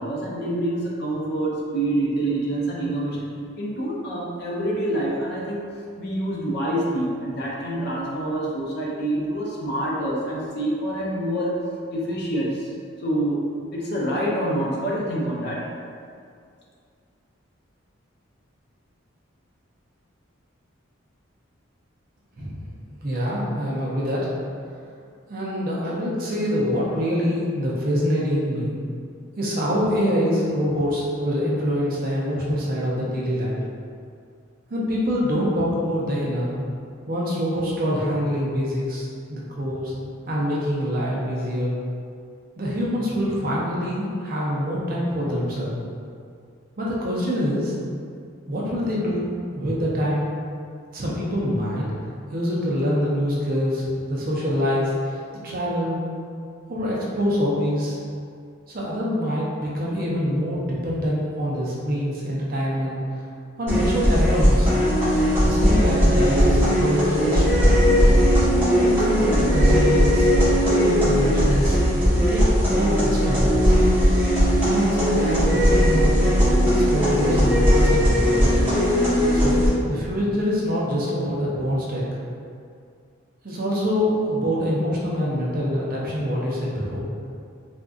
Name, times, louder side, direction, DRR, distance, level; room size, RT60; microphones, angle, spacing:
voice 1, 0.0-3.3 3.6-5.6 6.0-11.6 11.9-12.7 13.0-15.7, right 1 dB, 50° left, -4 dB, 0.5 m, -26 dB
voice 2, 23.0-24.3 25.3-28.8 29.4-33.6 34.7-36.5 37.1-39.9 40.3-41.8 42.6-45.7 46.8-47.7 48.5-49.3 49.5-50.3 50.9-51.8 52.3-56.0 56.7-58.0 58.7-63.0 63.6-64.8 65.4-67.5 68.8-70.3 70.8-71.8 72.3-72.4 72.7-73.6 74.7-76.2 76.8-78.6 79.3-79.6 79.9-82.1 83.4-87.1, equal, 45° right, -5 dB, 0.5 m, -25 dB
sound 1, 63.7-79.7, equal, 10° right, 1.0 m, -18 dB
3.5 x 2.6 x 2.4 m, 2.3 s
head